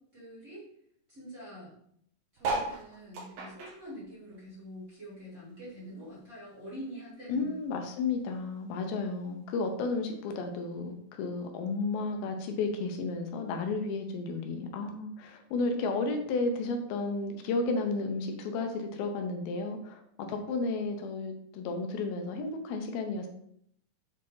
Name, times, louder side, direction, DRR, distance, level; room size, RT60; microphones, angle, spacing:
voice 1, 0.1-0.6 1.1-1.7 2.3-7.5, equal, 25° right, -8 dB, 2.3 m, -45 dB
sound 1, 2.4-5.1 5.5-7.0 7.5-7.6 7.8-7.9 8.0-8.4 9.2-9.3, right 3 dB, 80° right, 3.3 m, -37 dB
voice 2, 7.3-20.0 20.3-23.3, left 3 dB, 85° left, 5 dB, 2.7 m, -32 dB
8.5 x 3.8 x 3.8 m, 0.70 s
omnidirectional pair, 4.2 m